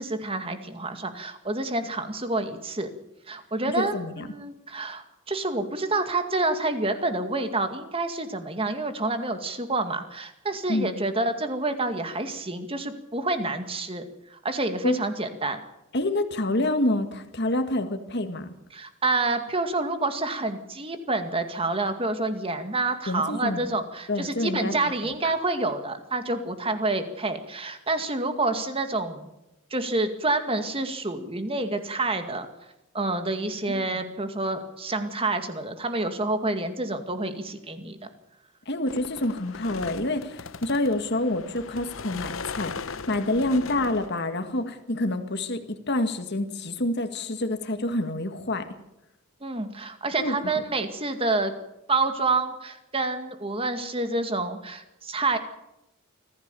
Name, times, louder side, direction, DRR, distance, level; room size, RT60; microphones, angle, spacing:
voice 1, 0.0-2.9 3.3-15.6 18.7-29.3 29.7-32.5 32.9-38.0 49.4-51.5 51.9-55.4, right 2 dB, 25° right, 8 dB, 2.1 m, -28 dB
voice 2, 3.8-4.3 10.7-10.9 14.8-15.0 15.9-18.5 23.1-23.7 24.1-24.7 25.0-25.1 33.7-34.0 38.7-48.7 50.2-50.4, left 1 dB, 50° left, 7 dB, 1.9 m, -27 dB
sound 1, 38.9-44.3, left 5 dB, 65° left, 0.9 m, -38 dB
24.5 x 15.0 x 7.0 m, 0.90 s
head